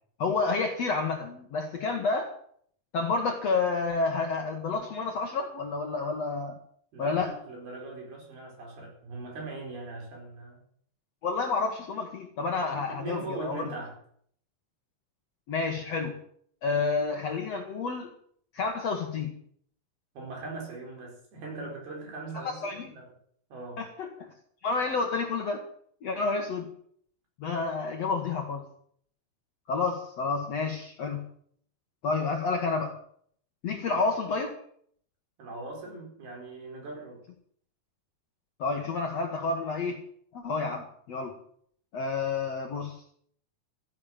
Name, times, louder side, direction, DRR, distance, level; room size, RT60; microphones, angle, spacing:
voice 1, 0.2-2.3 2.9-6.6 7.0-7.3 11.2-13.7 15.5-16.2 16.6-18.1 18.5-19.3 22.4-22.9 23.8-24.3 24.6-25.6 26.0-26.7 27.4-28.7 29.7-31.3 32.0-32.9 33.6-34.5 38.6-40.0 40.3-41.4 41.9-43.0, left 4 dB, 55° left, 3 dB, 2.0 m, -29 dB
voice 2, 6.9-10.6 12.6-14.0 20.1-23.1 23.5-23.9 33.9-34.0 35.4-37.2, right 3 dB, 70° right, 1 dB, 6.4 m, -40 dB
14.0 x 10.5 x 7.5 m, 0.62 s
omnidirectional pair, 4.6 m